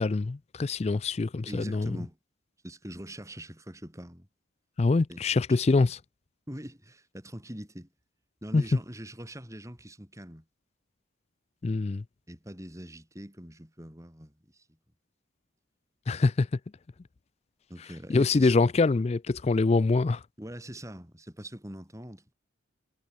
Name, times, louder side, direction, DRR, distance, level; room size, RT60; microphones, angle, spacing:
voice 1, 0.0-2.0 4.8-6.0 8.5-8.6 11.6-12.0 16.1-16.5 18.1-20.2, left 3 dB, 30° left, 0.4 m, -24 dB
voice 2, 1.5-2.2 2.6-4.3 5.1-5.2 5.5-5.6 6.5-7.9 8.4-10.5 12.3-14.7 17.7-18.5 20.4-22.3, equal, 15° right, 5.8 m, -43 dB
head